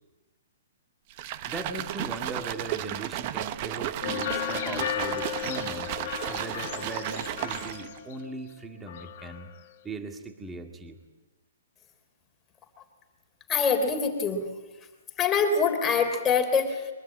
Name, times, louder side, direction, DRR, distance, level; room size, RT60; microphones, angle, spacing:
Shaking Waterbottle, 1.1-8.0, right 13 dB, 30° right, 0.9 m, -34 dB
voice 1, 1.5-9.5 9.8-11.0, right 3 dB, 10° right, 4 dB, 2.1 m, -39 dB
sound 1, 4.0-8.6 8.9-9.6, left 11 dB, 40° left, 1.5 m, -35 dB
voice 2, 13.5-14.5 15.2-16.9, left 5 dB, 15° left, 3 dB, 3.4 m, -24 dB
23.5 x 22.5 x 8.9 m, 1.1 s
hypercardioid pair, 165°, 0 cm